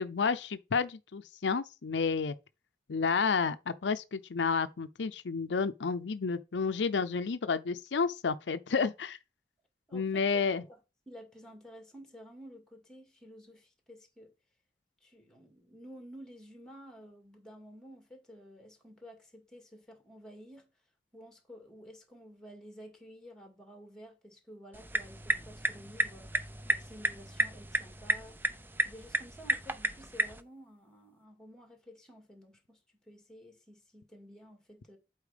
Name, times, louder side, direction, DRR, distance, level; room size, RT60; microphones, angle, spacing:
voice 1, 0.0-2.3 2.9-9.2 9.9-10.6, left 5 dB, 85° left, 0.5 m, -30 dB
voice 2, 9.9-10.8 11.1-14.3 15.0-20.7 21.1-26.4 26.7-28.4 28.8-35.0, equal, 5° left, 2.2 m, -52 dB
sound 1, 24.7-30.4, right 2 dB, 10° right, 0.6 m, -33 dB
8.2 x 4.5 x 5.0 m
head